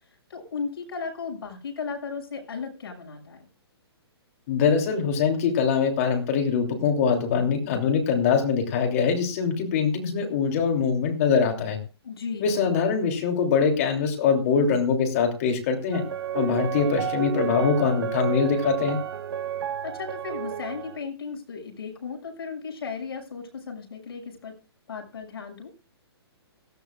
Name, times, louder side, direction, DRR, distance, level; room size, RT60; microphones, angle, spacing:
voice 1, 0.3-3.5 12.0-12.5 19.8-24.5 24.9-25.7, left 5 dB, 65° left, 1 dB, 6.4 m, -35 dB
voice 2, 4.5-11.8 12.4-16.0 16.3-19.0, left 6 dB, 35° left, 4 dB, 3.0 m, -23 dB
sound 1, 15.9-21.0, right 10 dB, 65° right, 1.4 m, -31 dB
18.0 x 15.0 x 2.4 m, 0.33 s
hypercardioid pair, 165°, 14 cm